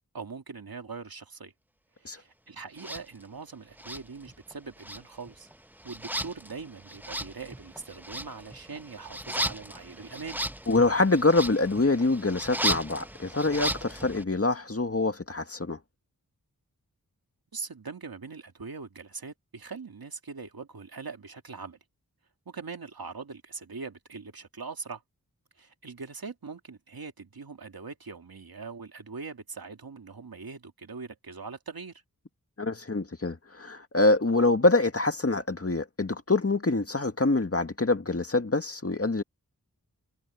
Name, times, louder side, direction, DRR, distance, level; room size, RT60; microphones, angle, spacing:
voice 1, 0.1-1.5 2.0-5.5 5.8-10.4 17.5-21.8 22.5-25.0 25.6-32.0, right 4 dB, 80° right, 2.4 m, -42 dB
sound 1, 2.8-3.0 3.8-4.5 4.8-14.2, right 1 dB, 5° right, 0.8 m, -35 dB
voice 2, 10.7-15.8 32.6-39.2, left 2 dB, 40° left, 1.9 m, -25 dB
wide cardioid pair, 65°, 35 cm